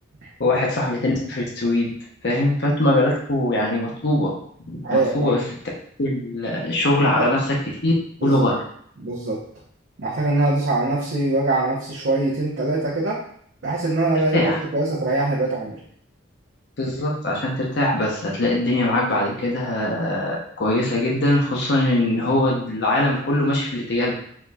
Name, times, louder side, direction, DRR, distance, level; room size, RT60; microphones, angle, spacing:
voice 1, 0.4-1.9 2.2-4.3 4.7-5.4 6.0-7.6 7.8-7.9 8.2-8.6 14.3-14.6 16.8-24.1, left 1 dB, 60° left, -3 dB, 0.8 m, -21 dB
voice 2, 4.8-5.3 7.0-7.3 8.2-8.5 9.0-9.4 10.0-13.2 13.6-15.8, right 2 dB, 70° right, -7 dB, 1.0 m, -23 dB
4.7 x 4.1 x 2.4 m, 0.63 s
head